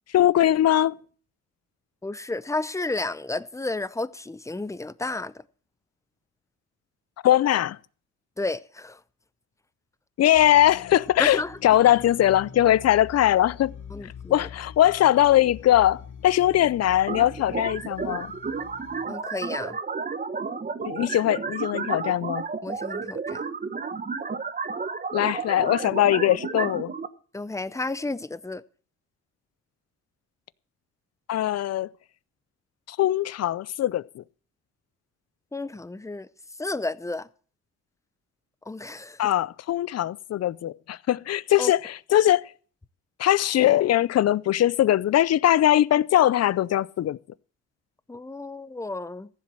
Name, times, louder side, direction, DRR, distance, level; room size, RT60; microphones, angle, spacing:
voice 1, 0.1-1.0 7.2-7.8 10.2-13.7 14.3-18.3 20.8-22.4 25.1-26.9 31.3-31.9 32.9-34.2 39.2-42.5 43.2-47.2, left 12 dB, 55° left, 0.5 m, -21 dB
voice 2, 2.0-5.3 8.4-9.0 11.2-11.6 13.9-14.5 19.1-19.8 22.6-23.4 27.3-28.6 35.5-36.3 36.6-37.3 38.7-39.3 41.6-41.7 48.1-49.3, left 2 dB, 10° left, 0.6 m, -32 dB
sound 1, 10.3-19.1, left 6 dB, 75° left, 2.1 m, -44 dB
sound 2, 17.1-27.1, right 5 dB, 30° right, 1.0 m, -32 dB
14.5 x 7.4 x 7.6 m
cardioid pair, 90°, 31 cm